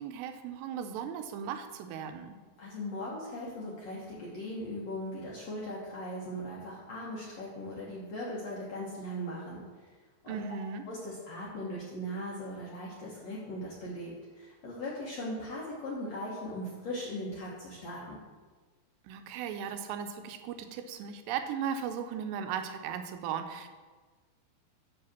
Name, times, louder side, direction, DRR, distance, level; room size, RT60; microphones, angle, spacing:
voice 1, 0.0-2.4 10.3-10.8 19.0-23.7, right 7 dB, 85° right, 7 dB, 2.9 m, -37 dB
voice 2, 2.6-10.0 10.2-10.4 10.9-18.2, equal, 70° left, -5 dB, 1.6 m, -39 dB
9.4 x 4.1 x 7.2 m, 1.4 s
omnidirectional pair, 4.9 m